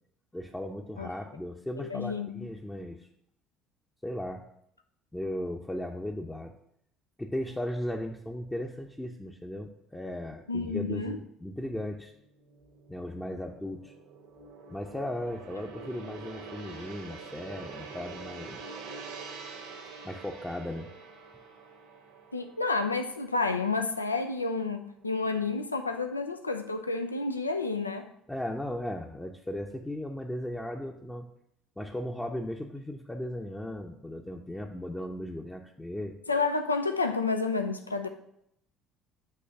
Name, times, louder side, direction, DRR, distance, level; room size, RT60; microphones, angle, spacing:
voice 1, 0.3-3.1 4.0-4.5 5.1-6.5 7.2-12.1 12.9-13.9 14.7-18.6 20.0-20.9 28.3-31.3 31.8-36.2, left 1 dB, 10° left, 0 dB, 0.7 m, -36 dB
voice 2, 1.8-2.5 10.5-11.2 22.3-28.1 36.3-38.1, left 4 dB, 90° left, 7 dB, 0.4 m, -30 dB
Gong, 12.1-24.4 24.8-25.0, right 4 dB, 70° right, 1.3 m, -46 dB
7.8 x 3.2 x 5.8 m, 0.74 s
figure-of-eight pair, 60°, 0 cm